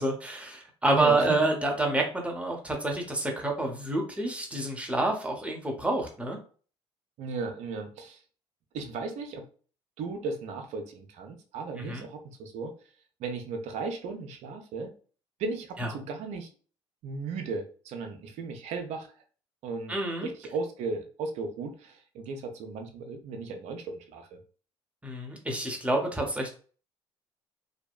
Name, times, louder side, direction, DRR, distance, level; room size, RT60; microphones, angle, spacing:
voice 1, 0.0-6.4 11.8-12.0 15.8-15.9 19.9-20.3 25.0-26.5, right 2 dB, 10° right, 1 dB, 0.8 m, -28 dB
voice 2, 0.9-1.3 7.2-8.2 8.7-9.5 10.0-12.7 13.2-14.9 15.4-16.5 17.0-19.1 19.6-19.9 20.2-24.4, right 4 dB, 60° right, 4 dB, 0.6 m, -35 dB
2.7 x 2.1 x 2.3 m, 0.40 s
hypercardioid pair, 60°, 13 cm